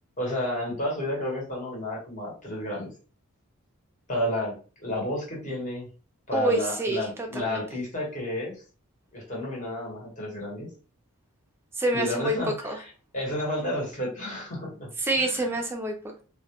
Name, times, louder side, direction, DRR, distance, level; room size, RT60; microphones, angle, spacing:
voice 1, 0.2-2.9 4.1-5.9 6.3-8.6 9.1-10.7 11.9-14.9 15.2-15.4, left 1 dB, 35° left, -3 dB, 0.9 m, -31 dB
voice 2, 6.3-7.6 11.7-12.4 12.6-12.8 15.0-16.2, right 2 dB, 10° right, 2 dB, 0.4 m, -27 dB
2.2 x 2.1 x 2.8 m, 0.37 s
head